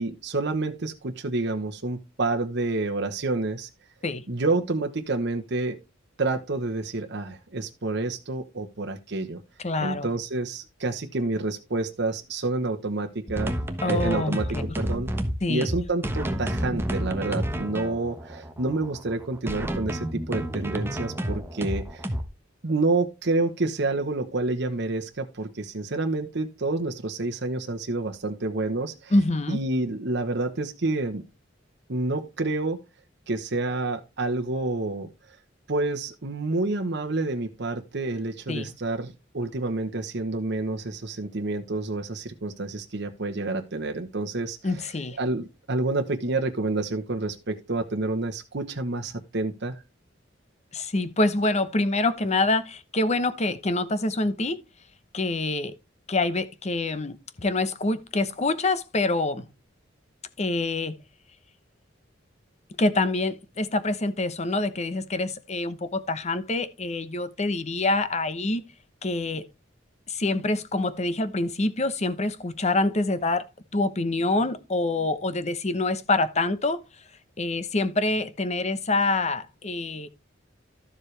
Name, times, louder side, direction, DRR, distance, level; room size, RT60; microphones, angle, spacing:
voice 1, 0.0-3.7 4.3-5.8 6.2-9.4 9.8-13.5 13.8-15.1 15.5-22.1 22.6-29.1 29.5-31.2 31.9-32.8 33.3-35.1 35.7-44.9 45.2-49.8, right 2 dB, 60° right, 1.1 m, -28 dB
voice 2, 9.6-10.1 13.8-14.4 14.7-14.8 15.4-15.7 29.1-29.6 38.5-38.7 44.6-45.2 50.7-54.6 55.1-55.7 56.1-59.5 60.4-61.0 62.8-68.6 69.0-69.4 70.1-73.4 73.7-76.8 77.4-80.1, left 2 dB, 35° left, 0.9 m, -26 dB
sound 1, 13.3-22.2, equal, 10° right, 1.2 m, -30 dB
12.5 x 7.3 x 3.3 m
head